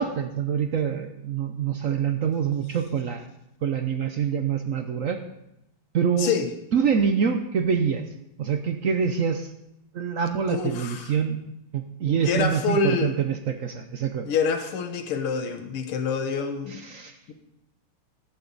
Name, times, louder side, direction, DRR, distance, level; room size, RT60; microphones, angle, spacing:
voice 1, 0.0-3.2 3.6-5.2 5.9-6.3 6.7-8.0 8.4-9.5 9.9-11.4 11.7-14.2 16.9-17.2, right 7 dB, 70° right, 6 dB, 0.7 m, -25 dB
voice 2, 6.2-6.5 10.5-11.2 12.1-13.2 14.2-16.8 17.3-17.4, left 5 dB, 90° left, 7 dB, 2.1 m, -26 dB
15.0 x 11.5 x 4.0 m, 0.85 s
omnidirectional pair, 2.4 m